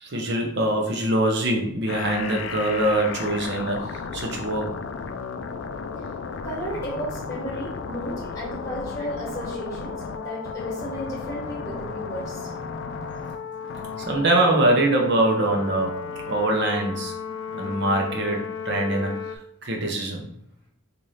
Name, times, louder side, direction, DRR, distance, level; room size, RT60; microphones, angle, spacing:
voice 1, 0.0-4.8 14.1-17.1 17.5-19.2 19.6-20.2, right 1 dB, 55° right, 1 dB, 0.8 m, -23 dB
sound 1, 1.9-19.4, left 5 dB, 60° left, 0.3 m, -34 dB
voice 2, 6.4-12.5, equal, 15° left, -6 dB, 1.6 m, -34 dB
3.2 x 2.6 x 4.1 m, 0.68 s
head